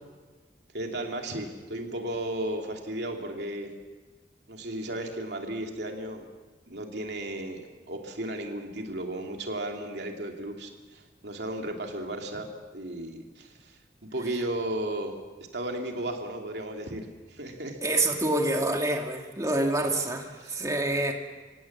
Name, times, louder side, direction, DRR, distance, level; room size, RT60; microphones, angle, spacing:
voice 1, 0.7-3.7 4.5-6.3 6.7-12.5 12.7-15.1 15.5-17.8 20.4-20.6, right 1 dB, 70° right, 2 dB, 2.8 m, -34 dB
voice 2, 17.8-21.1, right 2 dB, 20° right, 2 dB, 2.2 m, -27 dB
25.0 x 17.5 x 7.3 m, 1.4 s
head